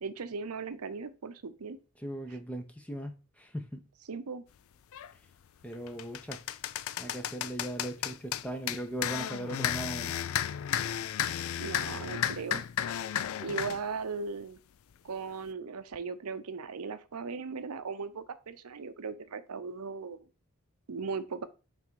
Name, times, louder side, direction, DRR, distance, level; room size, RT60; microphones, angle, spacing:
voice 1, 0.0-1.8 4.1-4.4 11.6-12.6 13.4-14.6 15.0-20.2 20.9-21.5, right 4 dB, 90° right, 0.7 m, -38 dB
voice 2, 2.0-3.9 5.6-6.4 7.0-10.2, right 1 dB, 5° left, 0.7 m, -39 dB
sound 1, 4.9-5.1 5.6-13.8, left 10 dB, 70° left, 0.3 m, -33 dB
6.0 x 3.5 x 4.6 m
head